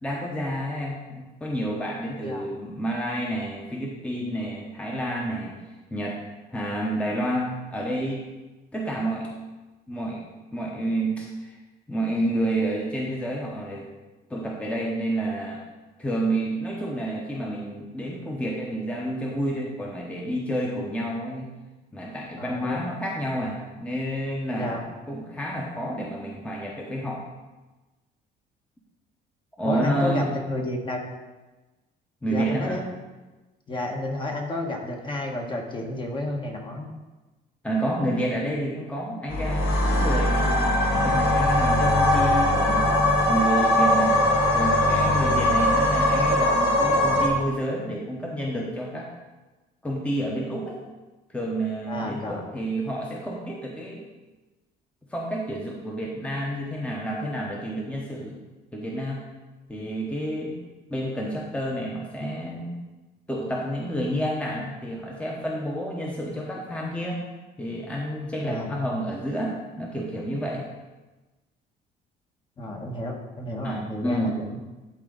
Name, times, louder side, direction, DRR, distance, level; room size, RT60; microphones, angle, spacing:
voice 1, 0.0-5.6 5.9-6.2 6.5-8.2 8.7-9.3 9.9-10.2 10.5-11.6 11.9-13.9 14.3-15.6 16.0-21.5 21.9-24.8 25.1-27.2 29.6-30.4 32.2-32.8 37.6-42.9 43.3-44.1 44.5-49.1 49.8-50.8 51.3-54.1 55.1-58.4 58.7-59.2 59.7-60.6 60.9-62.8 63.3-67.2 67.6-70.6 73.6-74.4, right 1 dB, 5° left, -2 dB, 1.0 m, -29 dB
voice 2, 22.4-22.8 24.5-24.8 29.6-31.0 32.3-32.8 33.7-36.9 51.9-52.4 68.4-68.7 72.6-74.6, left 2 dB, 30° left, 1 dB, 1.3 m, -31 dB
sound 1, 39.3-47.3, left 1 dB, 80° left, 1.7 m, -21 dB
11.5 x 3.9 x 3.9 m, 1.2 s
cardioid pair, 110°, 17 cm